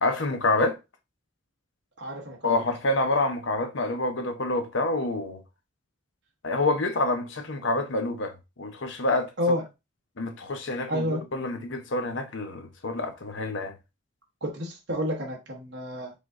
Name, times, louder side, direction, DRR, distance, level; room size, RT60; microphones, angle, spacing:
voice 1, 0.0-0.8 2.4-5.4 6.4-9.3 10.2-13.7, left 2 dB, 65° left, 0.8 m, -27 dB
voice 2, 2.0-2.6 9.4-9.6 10.9-11.2 14.4-16.1, equal, 60° right, 1.1 m, -30 dB
5.1 x 2.5 x 3.7 m
head